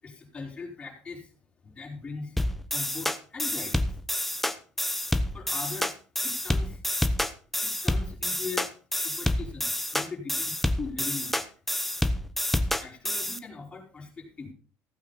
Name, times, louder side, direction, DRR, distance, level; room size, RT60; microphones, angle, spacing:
voice 1, 0.0-1.3 1.6-2.4 2.7-3.9 5.3-6.8 7.6-11.5 12.8-14.5, left 4 dB, 20° left, -1 dB, 4.7 m, -40 dB
sound 1, 2.4-13.4, left 1 dB, 5° left, 0.9 m, -28 dB
15.5 x 8.7 x 4.2 m, 0.37 s
cardioid pair, 140°, 5 cm